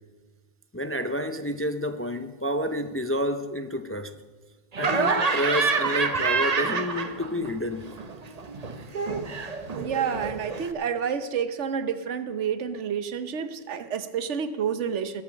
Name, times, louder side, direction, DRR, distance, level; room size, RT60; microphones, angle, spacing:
voice 1, 0.7-4.1 4.8-7.9, equal, 20° left, 9 dB, 0.4 m, -29 dB
Laughter, 4.7-7.5 7.8-10.7, right 4 dB, 35° right, 0.9 m, -27 dB
voice 2, 9.8-15.2, right 7 dB, 90° right, 11 dB, 1.2 m, -29 dB
20.5 x 7.1 x 6.4 m, 1.3 s
omnidirectional pair, 1.2 m